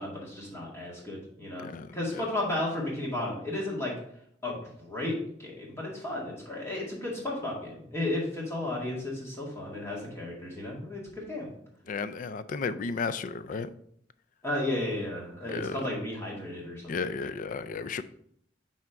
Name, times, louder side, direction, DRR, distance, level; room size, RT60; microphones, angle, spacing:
voice 1, 0.0-1.7 1.9-3.9 4.4-11.5 14.4-16.9, left 1 dB, 15° left, -4 dB, 2.0 m, -33 dB
voice 2, 1.6-2.3 11.9-13.7 15.5-15.8 16.9-18.0, left 4 dB, 45° left, 13 dB, 0.4 m, -34 dB
6.0 x 4.3 x 4.5 m, 0.69 s
head